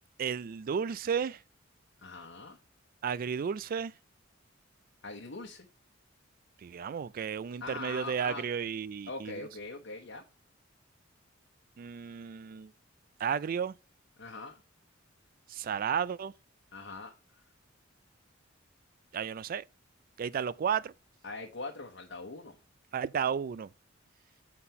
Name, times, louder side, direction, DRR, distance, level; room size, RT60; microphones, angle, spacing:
voice 1, 0.2-1.4 3.0-3.9 6.6-9.4 11.8-12.7 13.2-13.7 15.5-16.3 19.1-19.6 20.2-20.9 22.9-23.7, right 7 dB, 45° right, 0.3 m, -33 dB
voice 2, 2.0-2.6 5.0-5.7 7.6-8.5 9.1-10.2 14.2-14.6 16.7-17.1 21.2-22.6, left 3 dB, 65° left, 0.9 m, -42 dB
7.5 x 4.2 x 5.6 m
head